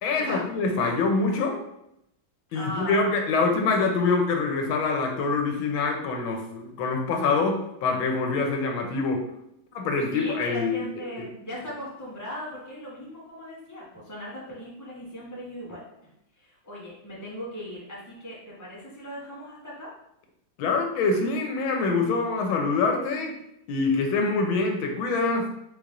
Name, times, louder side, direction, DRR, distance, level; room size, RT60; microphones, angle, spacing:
voice 1, 0.0-1.6 2.5-9.2 9.7-10.8 20.6-23.4 23.7-25.5, left 4 dB, 85° left, 2 dB, 1.5 m, -25 dB
voice 2, 2.5-3.2 10.1-19.9, equal, 10° left, -8 dB, 1.4 m, -38 dB
4.1 x 3.3 x 3.7 m, 0.79 s
omnidirectional pair, 2.2 m